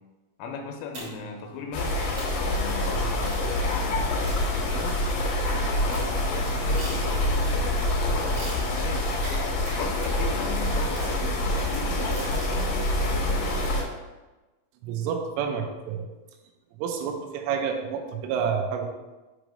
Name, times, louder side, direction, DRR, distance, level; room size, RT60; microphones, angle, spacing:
voice 1, 0.4-2.1 2.4-5.1 5.8-9.1 9.7-13.4, left 5 dB, 85° left, 2 dB, 3.3 m, -37 dB
sound 1, 0.9-1.4 1.8-1.9 2.2-2.5 3.3-3.6 4.3-5.0 5.5-7.5 8.3-12.5, right 1 dB, 70° right, 1.6 m, -42 dB
sound 2, 1.7-13.8, left 1 dB, 70° left, 2.1 m, -26 dB
voice 2, 14.8-16.1 16.8-18.9, right 6 dB, 85° right, 3 dB, 3.2 m, -29 dB
7.7 x 3.3 x 5.1 m, 1.1 s
omnidirectional pair, 5.9 m